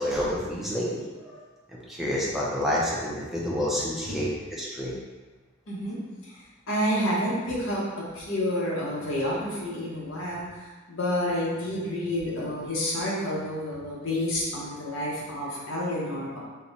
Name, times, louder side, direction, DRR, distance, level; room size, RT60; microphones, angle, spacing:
voice 1, 0.0-1.4 1.7-4.9, equal, ahead, -6 dB, 0.6 m, -29 dB
voice 2, 5.7-6.3 6.7-10.5 10.9-16.4, equal, 75° left, -6 dB, 1.2 m, -29 dB
4.5 x 2.3 x 4.0 m, 1.3 s
head